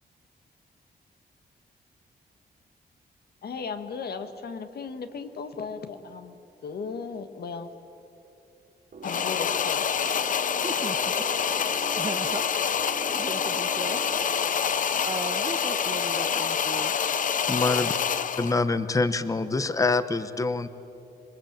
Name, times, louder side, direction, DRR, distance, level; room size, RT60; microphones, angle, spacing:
voice 1, 3.4-7.7 9.0-10.1, left 5 dB, 70° left, 8 dB, 1.6 m, -36 dB
sound 1, 8.9-14.9, right 4 dB, 55° right, 2.7 m, -43 dB
sound 2, 9.0-18.6, left 7 dB, 50° left, 0.7 m, -27 dB
voice 2, 10.6-11.2 12.0-12.7 13.1-14.0 15.1-16.9, right 3 dB, 25° right, 13 dB, 0.6 m, -37 dB
voice 3, 17.5-17.9 18.4-20.7, left 3 dB, 20° left, 12 dB, 0.9 m, -25 dB
27.0 x 21.5 x 9.0 m, 2.9 s
wide cardioid pair, 140°, 17 cm